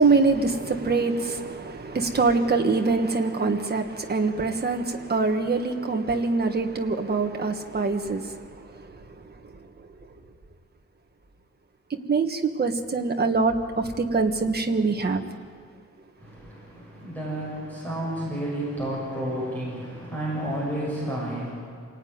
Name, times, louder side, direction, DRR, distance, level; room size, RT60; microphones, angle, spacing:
voice 1, 0.0-8.3 11.9-15.2, right 4 dB, 35° right, 1.6 m, -24 dB
voice 2, 16.2-21.5, right 1 dB, 5° left, 7.2 m, -31 dB
27.5 x 18.5 x 9.6 m
wide cardioid pair, 175°, 29 cm